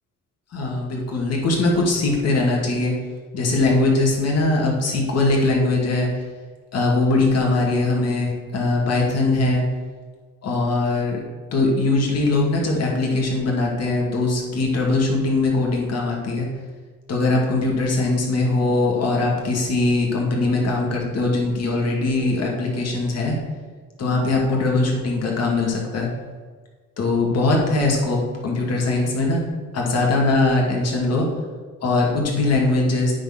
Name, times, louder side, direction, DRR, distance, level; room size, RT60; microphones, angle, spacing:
voice 1, 0.5-2.9 3.3-6.1 6.7-9.6 10.4-11.2 11.5-16.5 17.1-23.4 24.0-26.1 27.0-29.4 29.7-31.3 31.8-33.1, left 2 dB, 55° left, -1 dB, 2.5 m, -21 dB
9.0 x 4.5 x 6.2 m, 1.5 s
cardioid pair, 90°, 30 cm